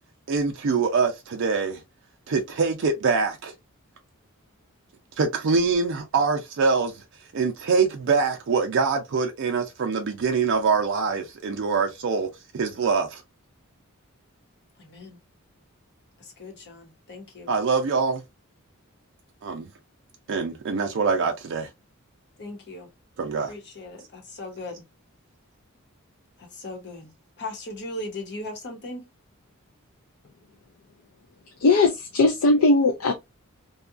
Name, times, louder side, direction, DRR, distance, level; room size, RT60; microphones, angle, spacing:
voice 1, 0.3-1.8 2.3-3.5 5.2-6.9 7.3-12.3 12.5-13.2 17.5-18.2 19.4-19.7 20.3-21.7 23.2-23.5, right 4 dB, 60° right, 0.4 m, -24 dB
voice 2, 16.4-17.5 22.4-22.9 23.5-24.8 26.6-27.1 27.4-29.0, left 2 dB, 55° left, 1.0 m, -37 dB
voice 3, 31.6-33.1, left 3 dB, 75° left, 0.5 m, -19 dB
2.7 x 2.3 x 2.4 m
head